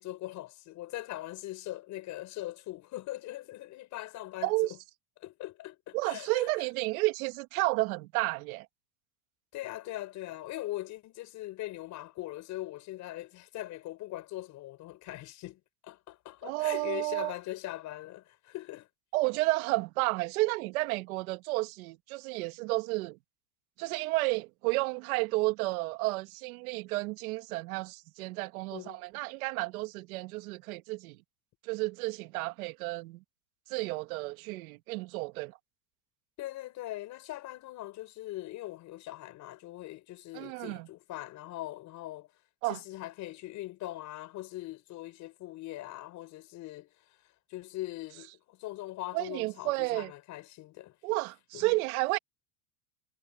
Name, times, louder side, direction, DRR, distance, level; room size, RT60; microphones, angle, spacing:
voice 1, 0.0-4.8 5.2-6.7 9.5-18.9 28.7-29.0 36.4-42.3 42.6-47.2 47.5-51.0 51.5-51.8, left 16 dB, 45° left, 6.1 m, -41 dB
voice 2, 4.4-4.7 5.9-8.7 16.4-17.3 19.1-23.2 23.8-31.2 31.6-33.2 33.7-35.6 40.3-40.9 42.6-42.8 49.1-50.1 51.0-52.2, right 22 dB, 80° right, 1.8 m, -31 dB
cardioid pair, 155°, 42 cm